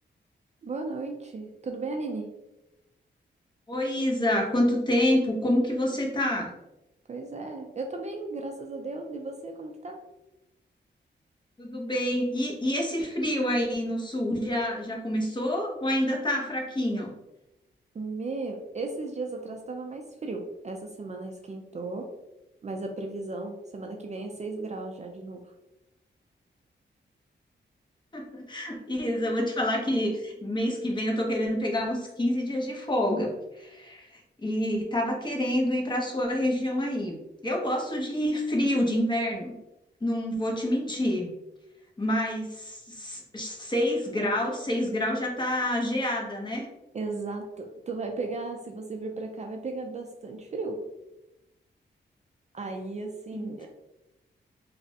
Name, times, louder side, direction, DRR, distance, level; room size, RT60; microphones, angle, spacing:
voice 1, 0.6-2.3 7.1-10.0 17.9-22.1 22.6-25.5 46.9-50.8 52.5-53.7, right 3 dB, 35° right, 3 dB, 0.4 m, -35 dB
voice 2, 3.7-6.5 11.6-17.1 28.1-37.1 37.4-39.5 40.0-41.3 42.0-46.7 53.3-53.7, left 1 dB, 25° left, -1 dB, 0.7 m, -27 dB
3.2 x 2.0 x 2.7 m, 0.93 s
wide cardioid pair, 90°, 19 cm